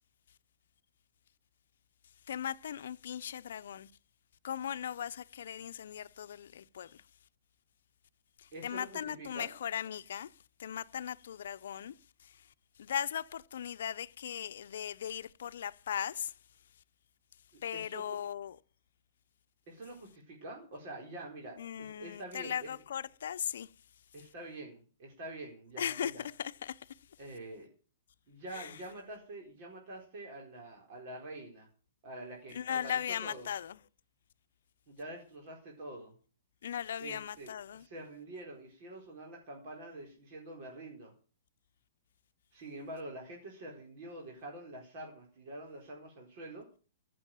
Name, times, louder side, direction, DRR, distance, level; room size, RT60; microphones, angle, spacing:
voice 1, 2.3-3.9 4.4-7.0 8.4-10.3 10.6-11.9 12.2-12.5 12.8-16.3 17.6-18.6 21.6-23.7 25.8-27.0 28.5-28.8 32.5-33.8 36.6-37.9, left 9 dB, 65° left, 0.8 m, -38 dB
voice 2, 8.5-9.5 17.5-18.0 19.7-22.7 24.1-26.3 27.2-27.7 28.3-31.7 32.0-33.5 34.9-36.1 37.0-41.1 42.5-46.6, right 1 dB, 35° right, 4.5 m, -46 dB
15.0 x 7.7 x 9.1 m
hypercardioid pair, 170°, 0 cm